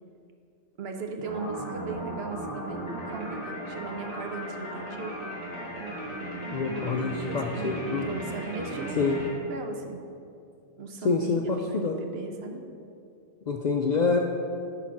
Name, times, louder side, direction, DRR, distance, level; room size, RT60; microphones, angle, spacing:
voice 1, 0.8-5.1 7.1-10.0 10.8-12.6, right 3 dB, 60° right, 4 dB, 0.9 m, -38 dB
sound 1, 1.2-9.3, right 1 dB, 30° right, 2.0 m, -36 dB
voice 2, 6.5-8.1 9.0-9.2 11.0-12.0 13.5-14.2, left 4 dB, 60° left, 2 dB, 0.4 m, -26 dB
10.5 x 3.9 x 5.9 m, 2.5 s
omnidirectional pair, 1.2 m